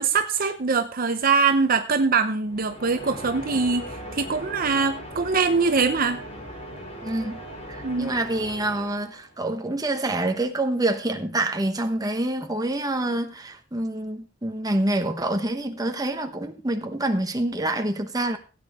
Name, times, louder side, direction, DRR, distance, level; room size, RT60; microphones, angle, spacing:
voice 1, 0.0-3.9 4.1-6.2 7.8-8.1, right 4 dB, 50° right, 8 dB, 0.8 m, -23 dB
sound 1, 2.5-9.3, equal, 35° left, 3.2 m, -39 dB
voice 2, 7.0-7.4 7.7-18.4, right 1 dB, 20° right, 6 dB, 1.1 m, -26 dB
16.5 x 8.6 x 3.6 m, 0.36 s
head